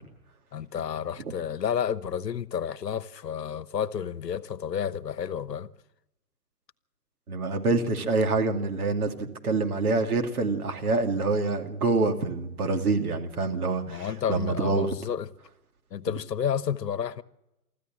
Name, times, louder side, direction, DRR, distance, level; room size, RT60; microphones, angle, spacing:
voice 1, 0.5-5.7 13.9-15.3 15.9-17.2, left 8 dB, 75° left, 1.1 m, -31 dB
voice 2, 7.3-14.9, right 3 dB, 60° right, 2.7 m, -26 dB
24.5 x 14.0 x 7.5 m
hypercardioid pair, 145°, 49 cm